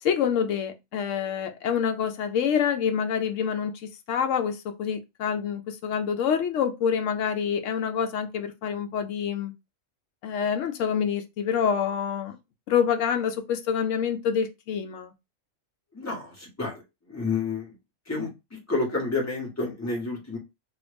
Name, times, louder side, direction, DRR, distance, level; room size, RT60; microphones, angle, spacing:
voice 1, 0.0-3.7 4.1-9.5 10.2-12.4 12.7-15.1, left 7 dB, 75° left, 0.9 m, -26 dB
voice 2, 15.9-16.8 17.1-17.7 18.1-20.4, left 3 dB, 15° left, 1.3 m, -30 dB
2.9 x 2.6 x 3.3 m
omnidirectional pair, 1.3 m